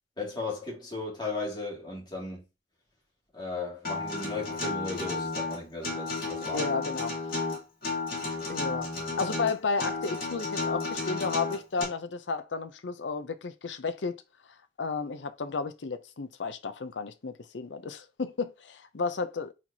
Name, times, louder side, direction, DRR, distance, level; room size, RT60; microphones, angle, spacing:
voice 1, 0.2-2.4 3.3-6.6, left 3 dB, 25° left, 2.3 m, -36 dB
Acoustic guitar, 3.8-11.8, left 3 dB, 55° left, 2.4 m, -32 dB
voice 2, 6.4-7.5 8.5-8.9 9.2-14.2 14.8-19.5, left 4 dB, 85° left, 0.6 m, -33 dB
4.4 x 4.2 x 2.8 m
head